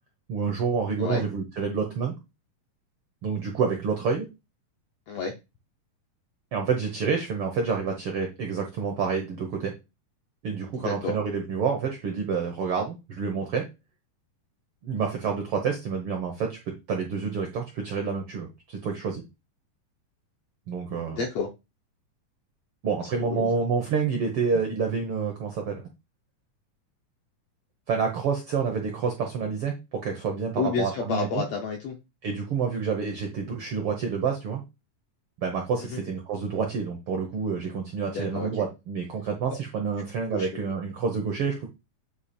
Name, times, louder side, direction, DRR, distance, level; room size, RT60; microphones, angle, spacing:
voice 1, 0.3-2.1 3.2-4.3 6.5-9.7 10.4-13.7 14.8-16.6 16.9-19.2 20.7-21.2 22.8-25.8 27.9-31.4 32.2-34.6 35.4-41.7, right 5 dB, 75° right, 3 dB, 1.3 m, -28 dB
voice 2, 10.7-11.1 21.1-21.5 23.0-23.5 30.6-32.0 35.9-36.0 38.1-38.7 40.3-40.5, left 5 dB, 80° left, 2 dB, 1.5 m, -30 dB
8.1 x 2.8 x 4.2 m, 0.25 s
omnidirectional pair, 3.8 m